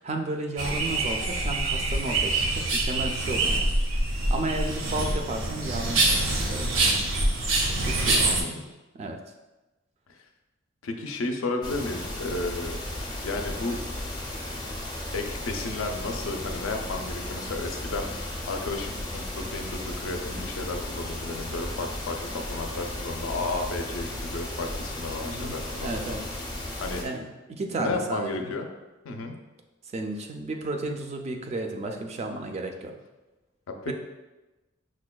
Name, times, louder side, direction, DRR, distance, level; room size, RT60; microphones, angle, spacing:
voice 1, 0.0-3.7 4.0-6.8 7.8-8.6 8.9-9.2 25.2-25.6 25.8-26.2 27.0-28.5 29.9-32.9 33.9-34.0, right 2 dB, 35° right, 3 dB, 0.3 m, -33 dB
sound 1, 0.6-8.4, right 2 dB, 75° right, 0.6 m, -25 dB
voice 2, 8.2-8.6 10.1-10.2 10.8-12.8 13.2-13.8 15.1-26.1 26.8-27.0 27.7-28.7 29.0-29.4 33.7-33.9, left 3 dB, 80° left, 4 dB, 0.5 m, -33 dB
sound 2, 11.6-27.0, left 1 dB, 20° left, 0.5 m, -35 dB
5.9 x 2.2 x 2.2 m, 1.1 s
head